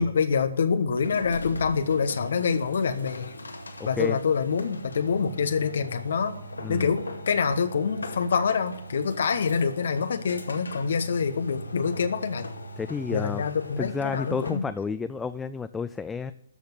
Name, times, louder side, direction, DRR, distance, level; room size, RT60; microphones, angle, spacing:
voice 1, 0.0-3.3 3.8-6.3 6.7-12.5 13.1-14.7, left 6 dB, 60° left, 9 dB, 1.2 m, -26 dB
sound 1, 1.0-14.7, equal, 80° left, 2.1 m, -40 dB
voice 2, 3.8-4.2 6.6-7.0 12.8-13.4 13.8-16.3, left 5 dB, 10° left, 11 dB, 0.4 m, -31 dB
13.5 x 6.5 x 9.8 m, 0.72 s
figure-of-eight pair, 130°, 0 cm